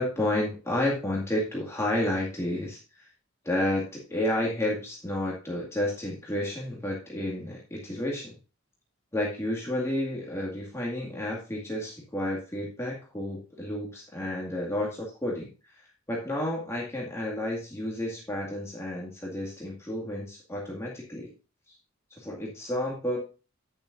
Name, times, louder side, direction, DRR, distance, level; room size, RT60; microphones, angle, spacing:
voice 1, 0.0-3.1 3.4-8.3 9.1-15.5 16.1-21.3 21.7-21.8 22.1-23.2, left 1 dB, 15° left, -3 dB, 2.1 m, -31 dB
10.5 x 9.4 x 2.6 m, 0.32 s
head